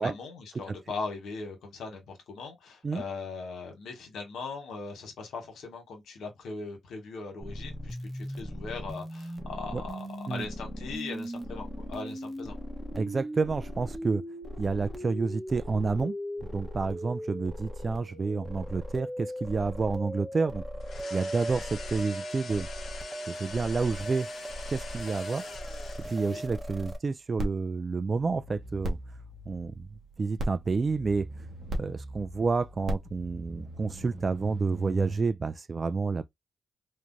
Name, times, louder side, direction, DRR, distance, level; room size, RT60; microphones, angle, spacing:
voice 1, 0.0-12.6 26.2-26.4, left 4 dB, 80° left, 1.0 m, -39 dB
sound 1, 7.4-27.0, equal, 10° right, 0.8 m, -38 dB
voice 2, 12.9-14.2 14.6-16.2 16.4-20.6 21.1-22.7 23.3-24.3 24.7-25.4 26.1-29.0 29.5-29.9 30.2-31.3 31.7-36.2, right 4 dB, 40° right, 0.3 m, -29 dB
sound 2, 20.8-26.4, left 4 dB, 60° left, 0.9 m, -44 dB
sound 3, 27.4-35.2, right 1 dB, 70° right, 0.8 m, -38 dB
3.1 x 2.1 x 2.5 m
supercardioid pair, 60°, 0 cm